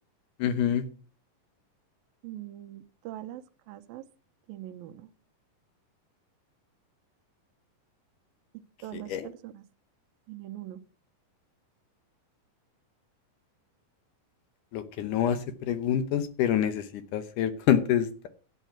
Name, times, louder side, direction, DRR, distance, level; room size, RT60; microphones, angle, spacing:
voice 1, 0.4-0.9 9.1-9.3 14.7-18.3, left 9 dB, 70° left, 11 dB, 2.3 m, -27 dB
voice 2, 2.2-4.0 4.5-5.1 8.5-9.6 10.3-10.8, right 13 dB, 90° right, 9 dB, 2.6 m, -42 dB
11.0 x 9.2 x 5.9 m, 0.39 s
omnidirectional pair, 4.0 m